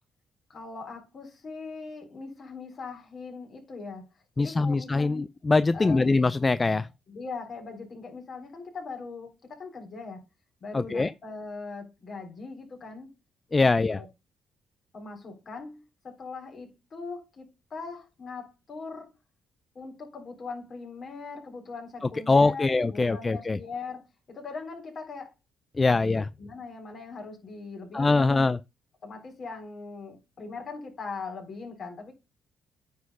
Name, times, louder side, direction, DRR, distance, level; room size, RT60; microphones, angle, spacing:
voice 1, 0.5-4.1 4.4-5.2 5.7-6.0 7.1-10.2 10.6-13.1 13.6-14.1 14.9-19.1 19.8-25.3 26.4-28.4 29.0-32.1, left 4 dB, 50° left, 3.7 m, -40 dB
voice 2, 4.4-6.9 10.7-11.1 13.5-14.0 22.3-23.6 25.8-26.3 27.9-28.6, left 3 dB, 25° left, 0.4 m, -23 dB
9.4 x 4.3 x 5.5 m
cardioid pair, 90°, 0 cm